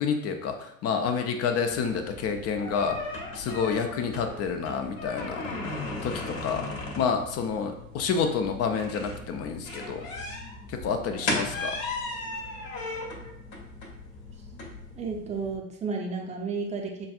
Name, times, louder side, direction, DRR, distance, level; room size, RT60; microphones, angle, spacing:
voice 1, 0.0-3.0 3.3-5.4 6.0-6.7 7.0-10.0 10.7-11.7, left 6 dB, 35° left, 5 dB, 0.6 m, -29 dB
sound 1, 1.7-15.6, left 2 dB, 60° left, 1.1 m, -36 dB
voice 2, 14.9-17.1, right 4 dB, 15° right, 2 dB, 0.7 m, -32 dB
6.1 x 2.5 x 2.4 m, 0.74 s
figure-of-eight pair, 65°, 45 cm